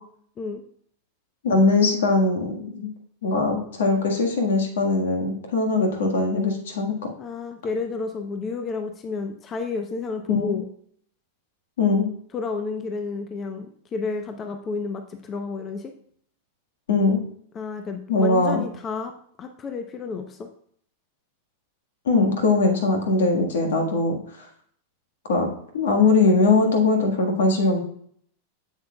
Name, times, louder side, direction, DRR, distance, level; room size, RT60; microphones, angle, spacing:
voice 1, 1.4-2.9 3.2-6.9 10.3-10.6 11.8-12.1 16.9-17.2 18.1-18.6 22.0-24.5 25.3-25.5 25.7-27.8, left 3 dB, 75° left, 3 dB, 1.5 m, -21 dB
voice 2, 7.2-10.7 12.3-15.9 17.5-19.1 19.4-20.5, left 4 dB, 30° left, 6 dB, 0.7 m, -31 dB
7.5 x 7.3 x 2.3 m, 0.62 s
hypercardioid pair, 105°, 0 cm